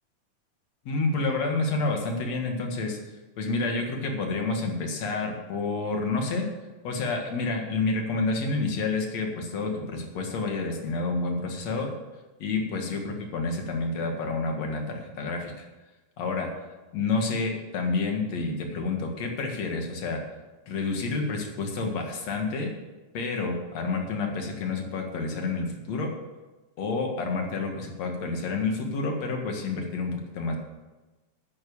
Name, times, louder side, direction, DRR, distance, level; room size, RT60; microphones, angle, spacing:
voice 1, 0.8-3.0 3.4-6.5 6.8-12.0 12.4-15.7 16.2-16.5 16.9-20.2 20.7-22.7 23.1-26.1 26.8-30.6, left 3 dB, 60° left, 2 dB, 2.9 m, -29 dB
10.0 x 9.5 x 7.1 m, 1.1 s
omnidirectional pair, 3.5 m